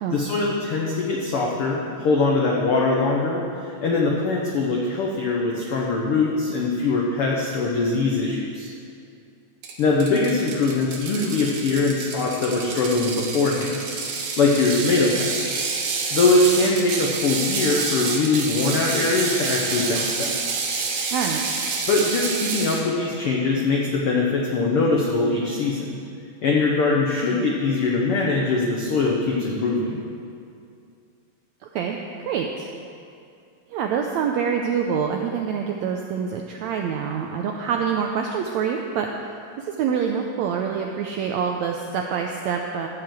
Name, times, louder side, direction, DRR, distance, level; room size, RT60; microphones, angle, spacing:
voice 1, 0.1-8.7 9.8-13.8 14.4-15.6 16.1-20.3 21.9-26.0 26.4-30.0, left 3 dB, 80° left, -2 dB, 1.2 m, -22 dB
Ratchet pawl, 9.6-22.8, right 4 dB, 70° right, 2.5 m, -28 dB
voice 2, 31.6-32.0 32.3-32.7 33.7-39.1 39.6-42.9, right 7 dB, 85° right, 2 dB, 1.6 m, -26 dB
13.5 x 4.9 x 7.7 m, 2.4 s
omnidirectional pair, 3.8 m